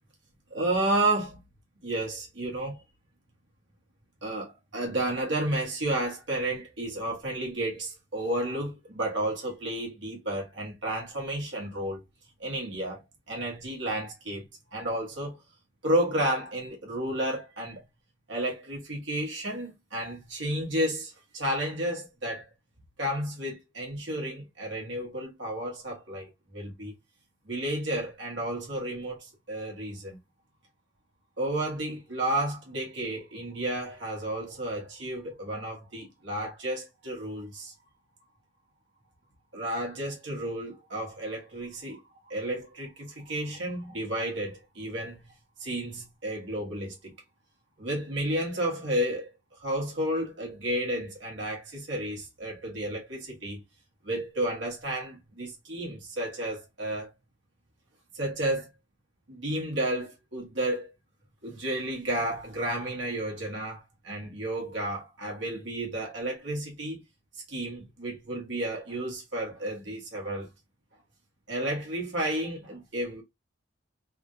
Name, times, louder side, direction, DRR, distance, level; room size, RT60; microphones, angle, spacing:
voice 1, 0.5-1.4 1.8-2.8 4.2-12.0 12.4-13.0 13.3-15.4 15.8-17.8 18.3-22.5 23.0-26.9 27.4-30.2 31.4-37.7 39.5-45.3 45.6-47.1 47.8-53.6 54.0-57.1 58.1-58.7 59.3-60.9 61.4-67.0 67.3-70.5 71.5-73.2, right 1 dB, 65° right, 1.5 m, -32 dB
3.5 x 2.5 x 2.5 m
head